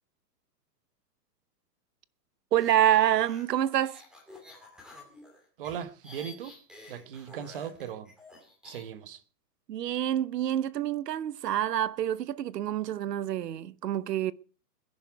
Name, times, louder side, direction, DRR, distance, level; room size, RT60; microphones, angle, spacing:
voice 1, 2.5-4.0 9.7-14.3, right 11 dB, 75° right, 1.0 m, -27 dB
sound 1, 2.6-8.8, left 2 dB, ahead, 2.6 m, -50 dB
voice 2, 5.6-6.6 6.9-8.1 8.6-9.2, right 9 dB, 35° right, 1.1 m, -38 dB
21.0 x 11.0 x 4.7 m
hypercardioid pair, 170°, 49 cm